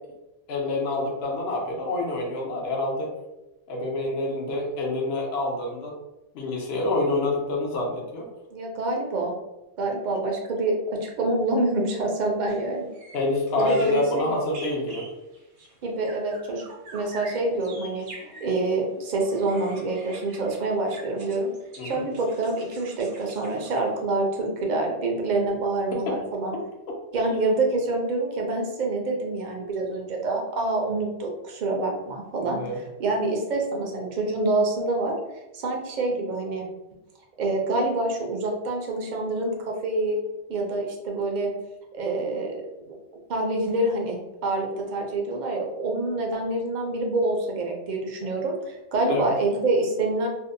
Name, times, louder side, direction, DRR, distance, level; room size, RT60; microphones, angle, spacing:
voice 1, 0.5-3.1 3.7-5.9 6.3-8.3 13.1-15.1 21.8-22.0 25.9-26.2 27.3-27.5 32.4-32.8 49.1-49.3, left 2 dB, 70° left, -1 dB, 0.8 m, -27 dB
voice 2, 8.5-9.3 9.8-12.9 13.6-14.3 15.8-16.7 16.9-21.5 21.8-26.5 27.1-32.6 33.0-35.2 35.5-36.7 37.4-40.2 40.5-41.5 41.9-42.9 43.3-50.3, right 2 dB, 55° right, 0 dB, 0.6 m, -26 dB
sound 1, 12.5-12.6 12.9-18.7 19.2-24.0, right 2 dB, 75° right, 1.0 m, -46 dB
2.7 x 2.1 x 2.6 m, 0.96 s
omnidirectional pair, 1.1 m